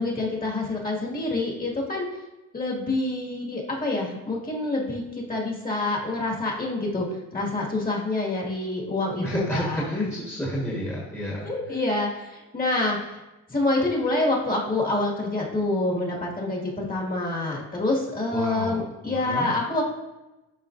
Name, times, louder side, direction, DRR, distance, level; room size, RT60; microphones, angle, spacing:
voice 1, 0.0-2.0 2.5-7.1 7.3-10.1 11.4-13.2 13.5-19.8, left 2 dB, 30° left, -2 dB, 2.0 m, -27 dB
voice 2, 9.2-11.5 18.3-19.5, equal, 10° left, -4 dB, 1.5 m, -31 dB
11.0 x 4.1 x 2.6 m, 1.0 s
cardioid pair, 90°, 30 cm